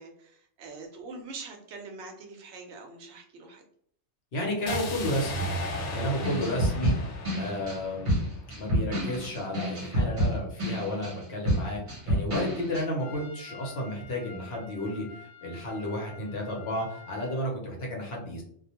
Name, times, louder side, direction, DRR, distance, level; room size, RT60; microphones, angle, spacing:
voice 1, 0.0-3.6, right 3 dB, 75° right, 3 dB, 0.9 m, -44 dB
voice 2, 4.3-5.5 5.9-6.9 7.3-8.3 8.5-11.8 12.1-15.0 15.4-18.4, left 1 dB, 65° left, -1 dB, 1.0 m, -32 dB
sound 1, 4.7-8.7, equal, 80° left, 0.9 m, -35 dB
sound 2, 6.2-12.8, equal, 45° right, 1.0 m, -28 dB
Trumpet, 13.0-17.4, left 4 dB, 20° left, 0.9 m, -48 dB
2.4 x 2.2 x 2.8 m, 0.63 s
omnidirectional pair, 1.2 m